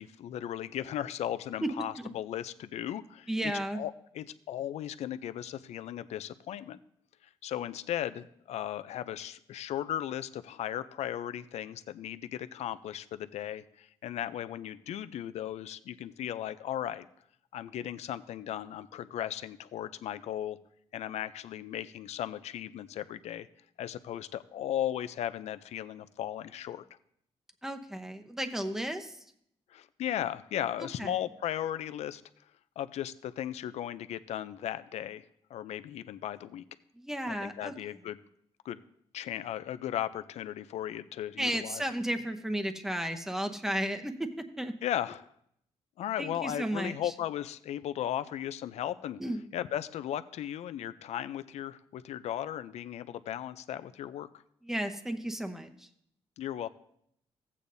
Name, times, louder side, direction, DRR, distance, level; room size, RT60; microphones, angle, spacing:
voice 1, 0.0-6.8 7.4-17.1 17.5-20.6 20.9-23.5 23.8-26.8 29.7-32.2 32.8-36.6 37.3-38.2 38.6-38.8 39.1-41.8 44.8-45.3 46.0-49.2 49.5-54.3 56.4-56.7, left 11 dB, 85° left, 13 dB, 0.4 m, -36 dB
voice 2, 3.3-3.8 27.6-29.2 30.8-31.1 37.0-37.7 41.4-44.7 46.2-47.1 49.2-49.5 54.6-55.9, right 1 dB, 5° right, 6 dB, 0.8 m, -34 dB
15.0 x 8.4 x 2.6 m, 0.71 s
cardioid pair, 105°, 11 cm